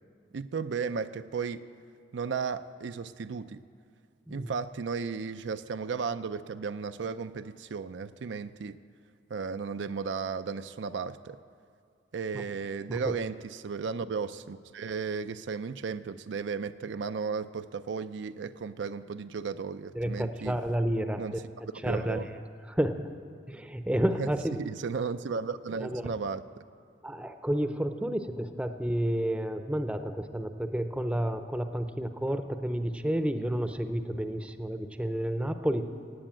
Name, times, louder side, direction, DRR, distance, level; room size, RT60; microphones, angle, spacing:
voice 1, 0.3-1.7 2.1-3.6 4.3-8.8 9.3-11.4 12.1-20.6 21.2-21.4 21.8-22.3 24.2-24.3 24.6-26.4, right 5 dB, 75° right, 11 dB, 0.4 m, -34 dB
voice 2, 19.9-21.4 21.8-22.2 22.7-23.1 23.5-24.6 25.8-26.1 27.0-35.9, right 1 dB, 5° right, 8 dB, 0.6 m, -30 dB
16.5 x 8.1 x 8.8 m, 2.2 s
head